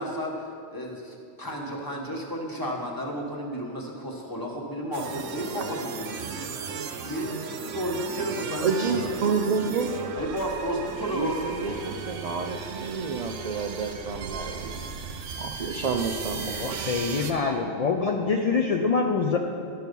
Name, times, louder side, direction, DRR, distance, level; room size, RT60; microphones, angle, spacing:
voice 1, 0.0-6.5 7.0-9.7 10.1-12.0, equal, 20° left, -1 dB, 1.1 m, -33 dB
sound 1, 4.9-17.3, right 5 dB, 90° right, 1.0 m, -36 dB
voice 2, 8.6-10.1 11.1-14.8 15.4-16.9, right 5 dB, 70° right, 4 dB, 0.3 m, -29 dB
voice 3, 16.5-19.4, left 4 dB, 75° left, 2 dB, 0.3 m, -25 dB
12.0 x 4.6 x 5.2 m, 2.4 s
omnidirectional pair, 1.2 m